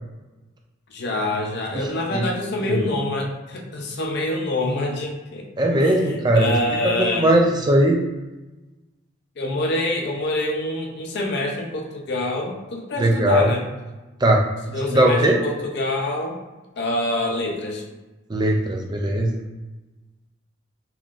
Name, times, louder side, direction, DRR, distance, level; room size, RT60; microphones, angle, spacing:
voice 1, 0.9-5.5 5.8-7.3 9.4-13.7 14.7-16.4 16.8-17.8, left 1 dB, 55° left, 1 dB, 0.6 m, -26 dB
voice 2, 1.7-2.3 2.6-2.8 5.6-6.6 6.8-8.0 13.0-13.5 14.2-14.5 14.9-15.4 18.3-19.4, right 1 dB, 20° right, 1 dB, 0.4 m, -19 dB
3.6 x 3.0 x 2.4 m, 1.1 s
head